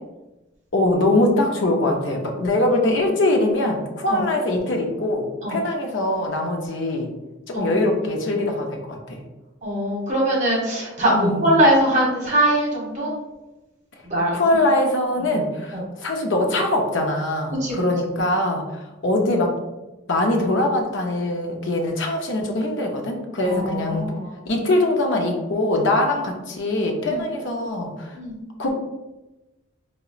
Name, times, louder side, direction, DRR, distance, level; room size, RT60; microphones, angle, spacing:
voice 1, 0.7-7.1 7.5-9.2 11.1-11.4 14.3-19.5 20.1-24.1 24.4-28.1 28.6-28.8, left 1 dB, 70° left, 2 dB, 0.5 m, -22 dB
voice 2, 9.6-13.1 14.0-14.4 15.7-15.8 17.6-17.8 23.4-24.3 27.1-27.2 28.1-28.4, right 1 dB, 35° right, -4 dB, 0.9 m, -21 dB
3.8 x 2.1 x 2.4 m, 1.0 s
head